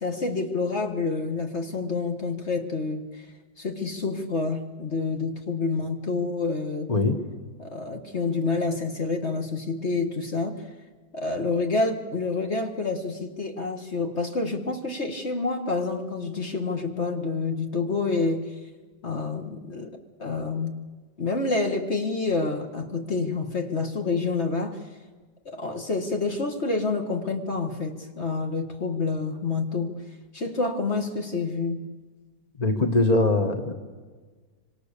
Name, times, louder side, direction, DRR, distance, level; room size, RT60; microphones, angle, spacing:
voice 1, 0.0-3.3 3.6-6.9 7.6-10.6 11.1-18.5 19.0-19.9 20.2-20.8 21.2-24.8 25.5-29.9 30.3-31.8, left 3 dB, 40° left, 4 dB, 1.9 m, -28 dB
voice 2, 32.6-33.7, left 2 dB, 25° left, 6 dB, 1.6 m, -22 dB
26.0 x 25.5 x 6.8 m, 1.4 s
omnidirectional pair, 1.9 m